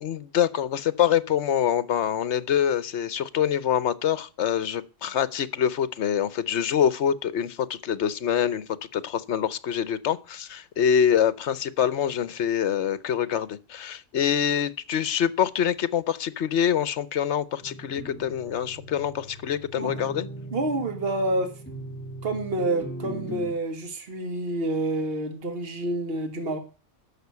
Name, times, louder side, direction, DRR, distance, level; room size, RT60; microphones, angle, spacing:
voice 1, 0.0-20.3, left 9 dB, 65° left, 1.1 m, -25 dB
sound 1, 17.6-23.5, right 1 dB, 10° left, 1.6 m, -39 dB
voice 2, 20.5-21.5 22.2-26.6, right 2 dB, 50° right, 2.0 m, -28 dB
11.5 x 6.9 x 8.2 m
omnidirectional pair, 1.3 m